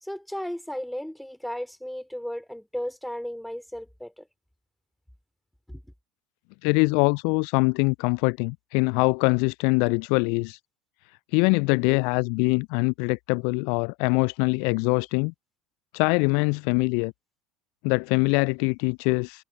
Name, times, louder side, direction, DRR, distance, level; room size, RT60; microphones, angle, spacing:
voice 1, 0.0-4.3 5.7-5.8, equal, ahead, 4.3 m, -35 dB
voice 2, 6.6-10.6 11.3-15.3 15.9-17.1 17.8-19.4, left 35 dB, 60° left, 0.4 m, -23 dB
figure-of-eight pair, 70°, 0 cm